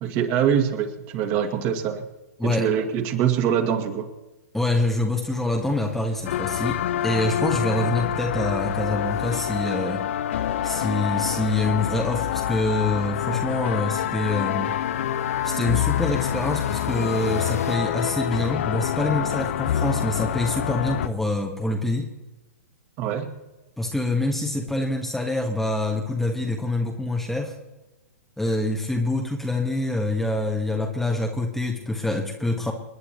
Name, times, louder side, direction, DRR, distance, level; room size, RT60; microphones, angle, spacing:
voice 1, 0.0-2.0 2.4-4.1 23.0-23.3, right 8 dB, 35° right, 4 dB, 2.1 m, -24 dB
voice 2, 4.5-10.0 10.6-14.7 15.4-22.1 23.8-27.6 28.4-32.7, left 2 dB, 5° left, 1 dB, 1.2 m, -26 dB
sound 1, 5.3-17.8, left 5 dB, 75° left, 1.6 m, -39 dB
sound 2, 6.3-21.1, left 10 dB, 50° left, 0.8 m, -26 dB
29.5 x 9.8 x 3.1 m, 1.1 s
figure-of-eight pair, 115°, 8 cm